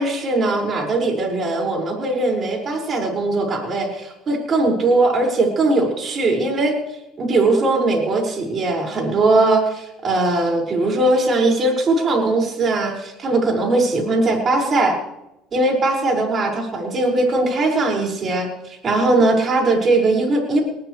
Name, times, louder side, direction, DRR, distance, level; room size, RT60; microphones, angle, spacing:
voice 1, 0.0-6.7 7.2-15.0 15.5-20.6, right 2 dB, 40° right, 0 dB, 6.1 m, -20 dB
21.0 x 18.5 x 3.4 m, 0.89 s
supercardioid pair, 85°, 0 cm